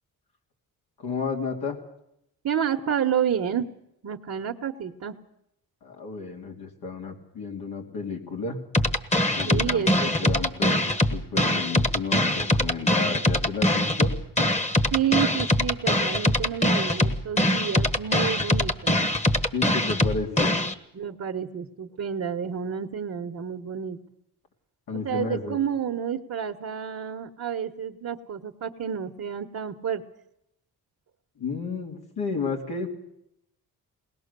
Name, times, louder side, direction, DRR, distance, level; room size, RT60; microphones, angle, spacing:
voice 1, 1.0-1.8 5.8-8.6 9.4-10.8 11.1-14.1 19.5-20.6 24.9-25.6 31.4-32.9, left 4 dB, 80° left, 0 dB, 3.0 m, -32 dB
voice 2, 2.4-3.7 4.0-5.2 9.5-10.2 14.9-19.0 20.9-24.0 25.0-30.0, right 8 dB, 50° right, 2 dB, 1.2 m, -29 dB
sound 1, 8.7-20.7, left 1 dB, 20° left, 1.4 m, -23 dB
21.5 x 19.0 x 6.8 m, 0.80 s
cardioid pair, 70°, 37 cm